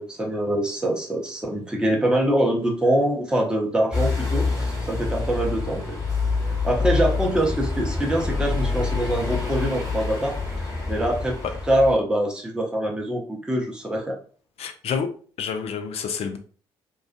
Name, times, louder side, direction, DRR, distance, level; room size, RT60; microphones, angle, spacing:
voice 1, 0.0-6.0 6.6-10.4 10.9-11.4 11.6-14.2, right 1 dB, 5° right, -1 dB, 0.7 m, -24 dB
sound 1, 3.9-12.0, left 4 dB, 25° left, 1.3 m, -26 dB
voice 2, 14.6-15.1 15.4-16.4, left 6 dB, 50° left, 5 dB, 0.5 m, -28 dB
2.4 x 2.3 x 2.4 m, 0.42 s
figure-of-eight pair, 45°, 13 cm